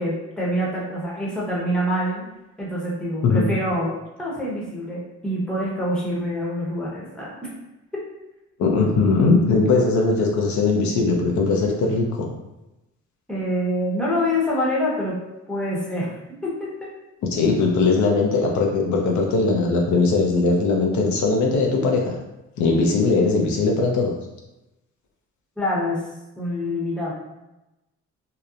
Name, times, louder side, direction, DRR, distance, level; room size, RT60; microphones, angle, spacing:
voice 1, 0.0-2.2 2.6-7.5 13.3-15.2 15.5-16.1 16.4-16.9 25.6-26.0 26.4-27.1, equal, 5° left, -5 dB, 0.9 m, -26 dB
voice 2, 8.6-12.3 17.3-22.2 22.6-24.1, left 3 dB, 70° left, 0 dB, 0.5 m, -20 dB
2.8 x 2.0 x 2.4 m, 0.96 s
cardioid pair, 90°, 30 cm